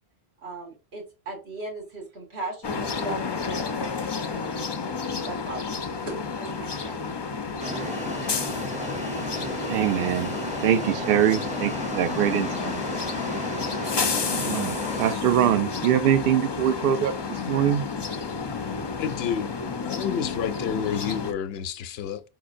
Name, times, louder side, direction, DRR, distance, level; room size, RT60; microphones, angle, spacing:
voice 1, 0.4-5.0 5.2-7.0, right 2 dB, 90° right, 2.2 m, -38 dB
sound 1, 2.6-21.3, left 5 dB, 45° left, 0.3 m, -31 dB
sound 2, 7.6-15.1, equal, 10° right, 0.6 m, -33 dB
voice 2, 9.7-10.3 10.6-12.8 14.3-17.1 17.5-17.9, right 10 dB, 65° right, 0.7 m, -23 dB
voice 3, 19.0-19.5 19.8-22.2, left 8 dB, 80° left, 0.8 m, -29 dB
4.8 x 3.8 x 2.5 m
omnidirectional pair, 1.0 m